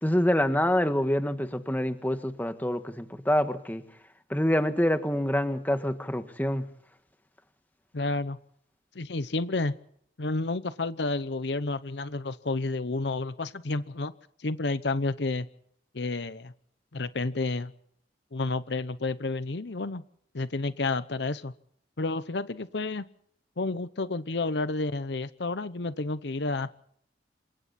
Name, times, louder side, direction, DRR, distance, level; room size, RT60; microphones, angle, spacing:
voice 1, 0.0-3.8 4.3-6.6, left 1 dB, 10° left, 8 dB, 1.6 m, -26 dB
voice 2, 7.9-8.4 8.9-9.7 10.2-14.1 14.4-15.5 15.9-16.5 16.9-17.7 18.3-20.0 20.3-21.5 22.0-23.0 23.6-26.7, left 3 dB, 65° left, 14 dB, 0.8 m, -30 dB
27.5 x 24.0 x 4.3 m, 0.66 s
head